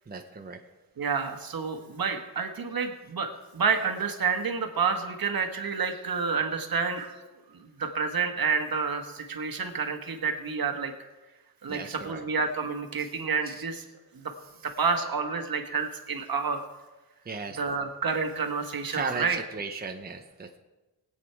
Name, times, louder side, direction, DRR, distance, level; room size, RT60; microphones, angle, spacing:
voice 1, 0.1-0.6 11.7-12.2 13.0-13.1 13.4-13.6 17.3-17.6 18.9-20.6, right 4 dB, 25° right, 4 dB, 0.9 m, -36 dB
voice 2, 1.0-7.1 7.6-10.9 11.6-13.8 14.1-14.2 14.6-16.6 17.6-19.4, right 5 dB, 60° right, 5 dB, 1.6 m, -29 dB
21.0 x 8.4 x 4.7 m, 1.1 s
wide cardioid pair, 130°, 40 cm